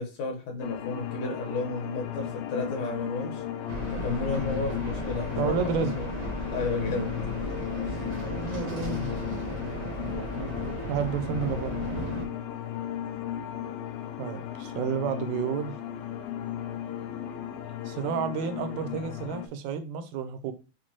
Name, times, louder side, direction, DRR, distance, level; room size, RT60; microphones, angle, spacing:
voice 1, 0.0-3.4 3.9-6.1 6.5-7.1 7.9-8.0, left 3 dB, 65° left, 2.3 m, -32 dB
sound 1, 0.6-19.5, left 10 dB, 90° left, 2.1 m, -35 dB
sound 2, 3.7-12.2, right 1 dB, 65° right, 1.0 m, -35 dB
voice 2, 5.4-6.0 8.4-9.1 10.9-11.8 14.2-15.8 17.9-20.5, right 7 dB, 80° right, 2.0 m, -31 dB
5.7 x 2.6 x 2.9 m
omnidirectional pair, 3.4 m